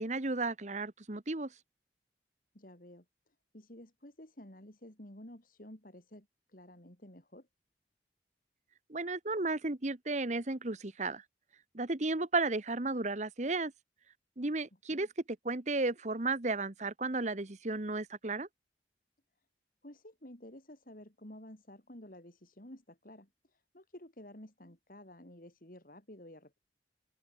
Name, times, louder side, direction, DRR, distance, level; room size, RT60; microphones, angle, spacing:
voice 1, 0.0-1.5 8.9-11.2 11.7-13.7 14.4-15.1 15.4-18.5, right 3 dB, 40° right, 1.2 m, -33 dB
voice 2, 2.5-3.1 3.5-7.5 14.9-15.1 19.8-26.6, left 1 dB, 50° left, 3.7 m, -52 dB
head